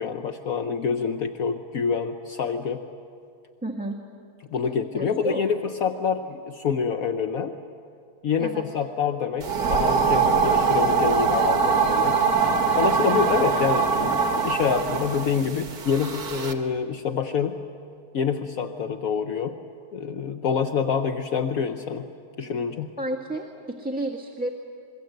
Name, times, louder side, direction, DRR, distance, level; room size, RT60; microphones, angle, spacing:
voice 1, 0.0-2.8 4.5-7.5 8.2-12.2 12.7-17.6 18.1-19.6 19.9-22.1 22.4-22.9, left 6 dB, 65° left, 7 dB, 1.3 m, -26 dB
voice 2, 3.6-4.0 4.9-5.4 8.4-8.6 15.5-15.6 23.0-24.5, right 1 dB, 5° right, 0 dB, 1.4 m, -31 dB
sound 1, 9.4-16.5, right 5 dB, 70° right, 2.1 m, -22 dB
26.0 x 22.5 x 7.9 m, 2.3 s
omnidirectional pair, 1.7 m